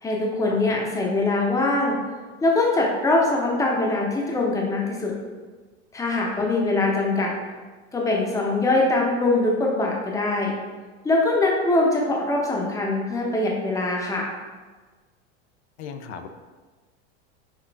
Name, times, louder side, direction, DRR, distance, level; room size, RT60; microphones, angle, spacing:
voice 1, 0.0-2.0 2.4-5.1 5.9-7.3 7.9-10.5 11.0-14.3, left 2 dB, 10° left, -1 dB, 0.7 m, -22 dB
voice 2, 15.8-16.3, left 6 dB, 80° left, 7 dB, 0.5 m, -36 dB
6.0 x 2.4 x 3.4 m, 1.3 s
supercardioid pair, 125°, 34 cm